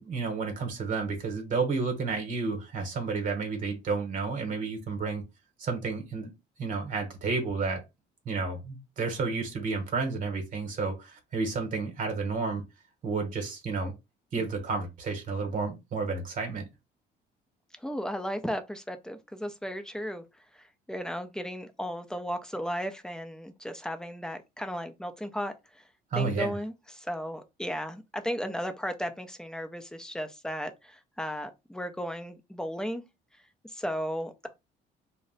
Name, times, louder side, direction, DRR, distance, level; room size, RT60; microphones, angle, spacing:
voice 1, 0.0-5.2 5.6-6.3 6.6-7.8 8.2-12.6 13.0-13.9 14.3-16.6 26.1-26.6, right 4 dB, 50° right, 1.0 m, -31 dB
voice 2, 17.8-20.2 20.5-25.8 26.2-33.0 33.7-34.5, equal, 5° left, 0.5 m, -35 dB
2.5 x 2.1 x 3.8 m
cardioid pair, 110°, 17 cm